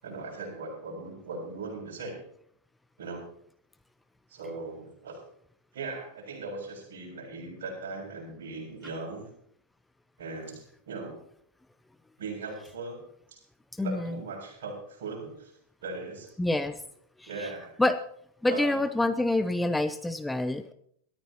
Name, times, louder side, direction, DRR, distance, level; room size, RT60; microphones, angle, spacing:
voice 1, 0.0-2.2 3.0-3.2 4.3-5.2 5.7-9.3 10.2-11.1 12.2-13.0 13.3-13.4 13.8-15.5 15.8-16.3 17.3-17.7 18.5-18.8, right 3 dB, 60° right, 0 dB, 7.5 m, -39 dB
voice 2, 13.8-14.2 16.4-16.8 17.2-17.5 17.8-18.0 18.4-20.7, left 2 dB, 5° left, 11 dB, 0.7 m, -27 dB
22.5 x 14.5 x 3.0 m, 0.65 s
figure-of-eight pair, 90°, 0 cm